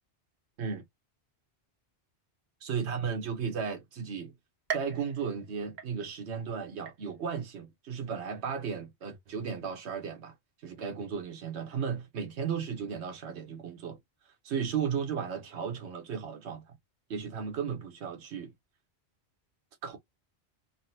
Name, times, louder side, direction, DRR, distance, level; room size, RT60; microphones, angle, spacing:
voice 1, 2.6-4.3 4.7-10.3 10.6-14.0 14.4-16.7 17.1-18.5 19.8-20.0, right 6 dB, 80° right, 1.2 m, -35 dB
sound 1, 4.7-6.4 6.9-7.4 7.9-8.0 9.0-9.1, right 7 dB, 50° right, 0.7 m, -40 dB
3.9 x 2.0 x 2.7 m
omnidirectional pair, 1.1 m